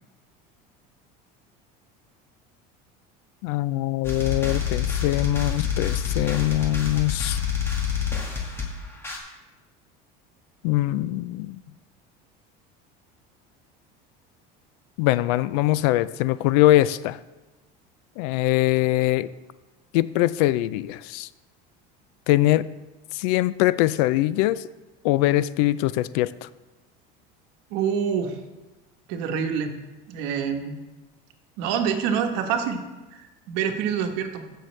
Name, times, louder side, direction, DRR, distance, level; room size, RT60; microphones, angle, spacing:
voice 1, 3.4-7.4 10.6-11.6 15.0-17.2 18.2-19.3 19.9-21.3 22.3-22.7 23.1-24.6 25.0-26.5, left 16 dB, 85° left, 17 dB, 0.4 m, -22 dB
sound 1, 4.0-9.2, left 7 dB, 10° left, 1.6 m, -27 dB
voice 2, 27.7-28.4 29.1-29.8 30.1-30.8 31.6-32.8 33.5-34.4, right 7 dB, 75° right, 6 dB, 1.2 m, -26 dB
14.5 x 6.4 x 3.2 m, 1.1 s
cardioid pair, 150°, 20 cm